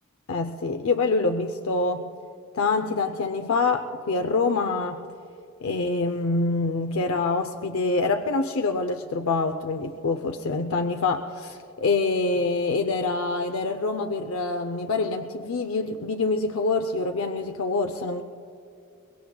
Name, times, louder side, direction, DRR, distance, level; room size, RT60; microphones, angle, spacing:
voice 1, 0.3-2.1 2.5-5.1 5.6-18.2, left 3 dB, 85° left, 6 dB, 0.6 m, -26 dB
23.5 x 21.5 x 2.3 m, 2.5 s
head